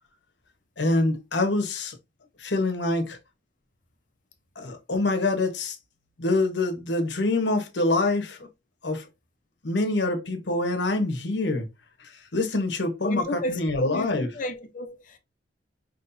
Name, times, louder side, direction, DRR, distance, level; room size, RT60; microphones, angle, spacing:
voice 1, 0.8-1.9 2.4-3.2 4.6-5.7 6.2-8.4 8.8-9.0 9.6-11.6 12.3-14.3, left 2 dB, 65° left, 1.1 m, -25 dB
voice 2, 13.0-15.2, left 1 dB, 45° left, 0.7 m, -32 dB
5.7 x 3.1 x 2.7 m
head